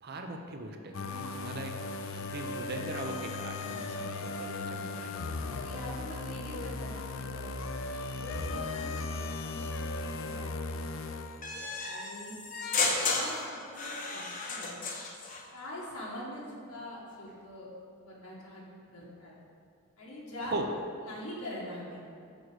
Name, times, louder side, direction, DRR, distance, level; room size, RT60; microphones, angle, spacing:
voice 1, 0.0-1.8 2.1-5.1 20.5-20.7, right 2 dB, 45° right, 4 dB, 0.7 m, -39 dB
sound 1, 0.9-11.8, left 3 dB, 60° left, 0.4 m, -37 dB
voice 2, 4.6-4.9 5.4-7.6 8.1-9.9 10.2-10.4 11.8-12.3 13.0-14.8 15.5-17.7 18.0-19.3 20.0-20.6 21.0-22.0, left 1 dB, 90° left, -6 dB, 1.9 m, -43 dB
sound 2, 11.4-15.4, left 3 dB, 40° left, 0.8 m, -33 dB
6.8 x 4.9 x 6.3 m, 2.5 s
head